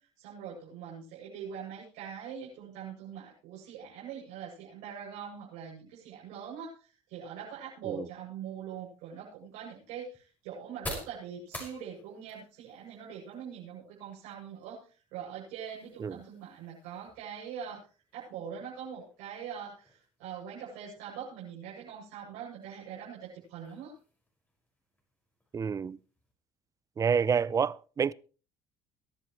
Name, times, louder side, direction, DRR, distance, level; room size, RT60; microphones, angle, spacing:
voice 1, 0.2-14.8 15.1-17.9 18.1-23.9, right 8 dB, 85° right, 7.5 m, -43 dB
sound 1, 8.7-26.3, left 1 dB, 15° left, 5.9 m, -51 dB
voice 2, 25.5-26.0 27.0-28.1, right 6 dB, 25° right, 0.5 m, -28 dB
22.0 x 11.5 x 3.2 m
cardioid pair, 105°, 12 cm